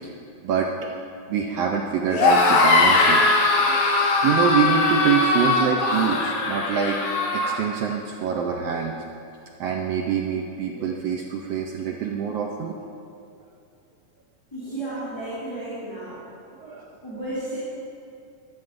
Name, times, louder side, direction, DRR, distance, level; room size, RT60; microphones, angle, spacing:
voice 1, 1.3-3.2 3.5-7.0 7.3-8.9 9.6-12.8 16.6-16.9, right 7 dB, 75° right, 1 dB, 1.5 m, -25 dB
sound 1, 2.1-7.5, left 3 dB, 75° left, 2.5 m, -20 dB
voice 2, 14.5-16.2 17.0-17.6, right 1 dB, 10° left, -13 dB, 2.6 m, -33 dB
16.0 x 12.5 x 2.6 m, 2.5 s
omnidirectional pair, 3.4 m